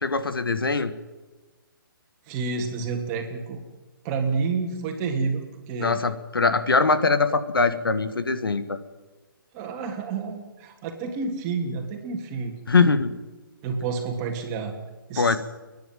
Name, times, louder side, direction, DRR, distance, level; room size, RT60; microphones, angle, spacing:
voice 1, 0.0-0.9 5.8-8.8 12.7-13.1 15.2-15.4, left 4 dB, 85° left, 11 dB, 1.7 m, -22 dB
voice 2, 2.3-3.6 4.0-6.0 9.5-12.5 13.6-14.7 15.1-15.4, right 4 dB, 25° right, 2 dB, 3.1 m, -29 dB
28.5 x 10.5 x 9.2 m, 1.3 s
hypercardioid pair, 150°, 12 cm